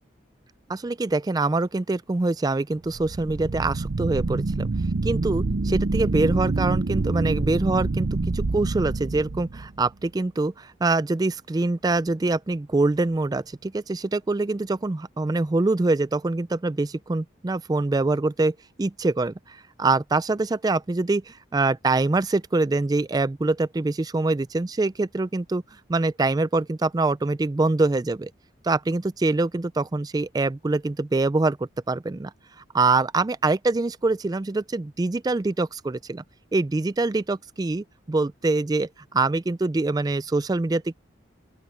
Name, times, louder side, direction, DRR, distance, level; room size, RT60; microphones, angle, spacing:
voice 1, 0.7-4.7 5.0-25.6 25.9-28.3 28.6-32.3 32.7-36.2 36.5-41.0, right 3 dB, 20° right, 0.3 m, -24 dB
sound 1, 2.9-9.9, right 3 dB, 55° right, 0.6 m, -26 dB
open air
head